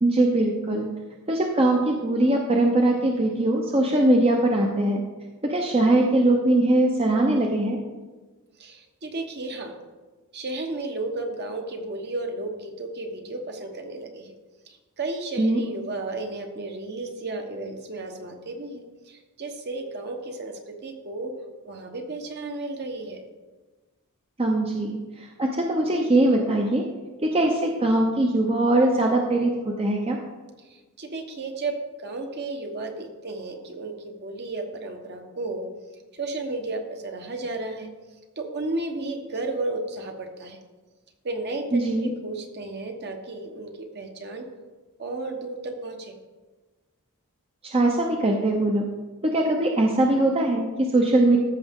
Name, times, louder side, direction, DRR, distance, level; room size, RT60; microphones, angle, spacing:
voice 1, 0.0-0.9 1.3-5.0 5.4-7.8 15.4-15.6 24.4-26.8 27.2-29.5 29.8-30.2 41.7-42.1 47.6-48.9 49.2-51.4, right 1 dB, 25° right, 1 dB, 0.7 m, -21 dB
voice 2, 8.6-9.8 10.3-14.3 14.7-21.3 21.6-23.2 30.6-35.7 36.1-37.9 38.4-40.6 41.2-44.5 45.0-46.2, right 2 dB, 50° right, 4 dB, 1.2 m, -33 dB
14.0 x 6.0 x 3.7 m, 1.3 s
head